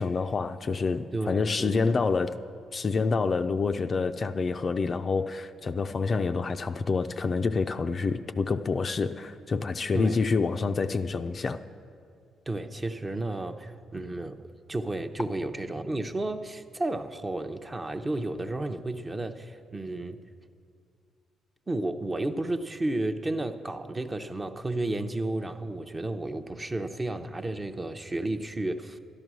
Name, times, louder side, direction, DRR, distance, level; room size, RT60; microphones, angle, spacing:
voice 1, 0.0-2.4 2.7-11.6, left 4 dB, 40° left, 9 dB, 0.4 m, -27 dB
voice 2, 1.1-1.8 9.9-10.2 12.5-20.2 21.7-29.0, right 2 dB, 20° right, 7 dB, 0.7 m, -32 dB
12.0 x 11.0 x 6.2 m, 2.3 s
cardioid pair, 90°, 0 cm